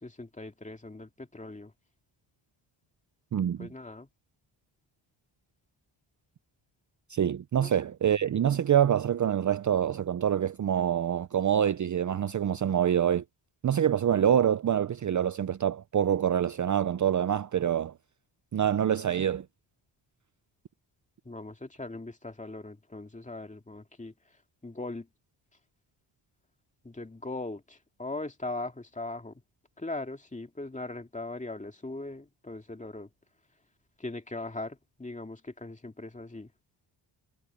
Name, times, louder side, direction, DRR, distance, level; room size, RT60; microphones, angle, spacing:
voice 1, 0.0-1.7 3.6-4.1 7.6-7.7 21.3-24.1 24.6-25.1 26.8-29.3 29.8-33.1 34.0-36.5, left 2 dB, 15° left, 2.2 m, -39 dB
voice 2, 3.3-3.7 7.1-13.2 13.6-17.9 18.5-19.4, right 9 dB, 40° right, 0.6 m, -26 dB
cardioid pair, 100°, 48 cm